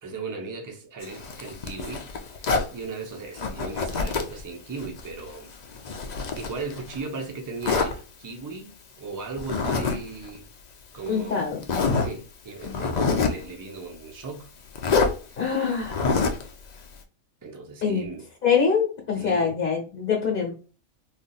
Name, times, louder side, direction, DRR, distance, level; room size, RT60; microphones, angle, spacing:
voice 1, 0.0-2.1 2.4-5.5 6.4-10.5 10.9-11.4 11.9-14.5 17.4-18.2 19.2-19.5, right 4 dB, 30° right, 0.3 m, -37 dB
Zipper (clothing), 1.0-2.7 3.4-4.4 4.8-7.0 7.6-7.9 9.4-10.0 10.2-10.4 11.1-11.2 11.6-12.1 12.6-13.4 14.8-15.1 15.8-16.5, left 4 dB, 80° left, 0.3 m, -26 dB
voice 2, 11.1-11.6 12.6-12.8 15.4-16.0 17.8-18.1 18.4-20.5, left 6 dB, 45° left, 1.1 m, -24 dB
3.9 x 2.5 x 2.3 m
omnidirectional pair, 1.4 m